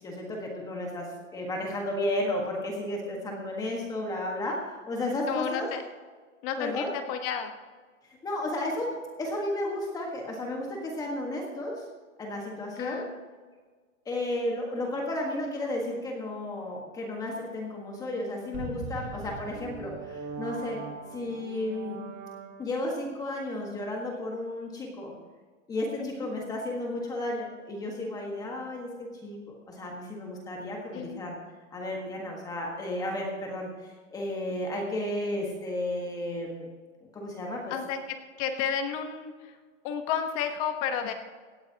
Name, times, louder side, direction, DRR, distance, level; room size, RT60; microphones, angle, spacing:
voice 1, 0.0-5.7 6.6-6.9 8.2-11.8 12.2-13.1 14.0-20.8 21.1-22.0 22.6-25.2 25.7-31.4 31.7-36.7 37.1-37.7, left 1 dB, 10° left, -1 dB, 1.5 m, -33 dB
voice 2, 5.3-5.8 6.4-7.5 12.8-13.1 26.0-26.3 30.9-31.2 37.7-39.6 39.8-41.1, left 8 dB, 25° left, 6 dB, 1.2 m, -32 dB
sound 1, 18.5-23.0, right 5 dB, 25° right, 1.2 m, -40 dB
17.5 x 14.0 x 2.9 m, 1.4 s
hypercardioid pair, 165°, 39 cm